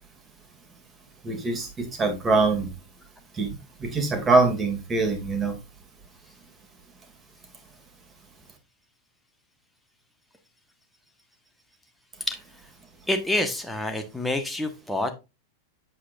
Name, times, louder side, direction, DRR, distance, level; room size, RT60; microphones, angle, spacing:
voice 1, 1.2-2.7 3.4-5.5, right 3 dB, 20° right, 6 dB, 2.6 m, -23 dB
voice 2, 13.1-15.1, left 1 dB, 5° left, 4 dB, 1.4 m, -27 dB
8.3 x 7.7 x 2.6 m, 0.25 s
figure-of-eight pair, 90°, 0 cm